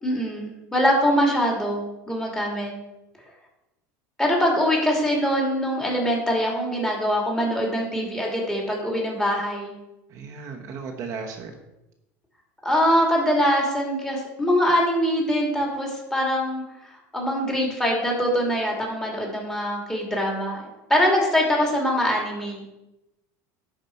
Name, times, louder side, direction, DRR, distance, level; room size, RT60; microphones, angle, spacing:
voice 1, 0.0-2.7 4.2-9.7 12.6-16.6 17.1-22.6, equal, 5° left, -2 dB, 2.4 m, -23 dB
voice 2, 10.1-11.6, right 5 dB, 40° right, 1 dB, 1.1 m, -35 dB
11.0 x 5.0 x 4.5 m, 0.95 s
supercardioid pair, 140°, 8 cm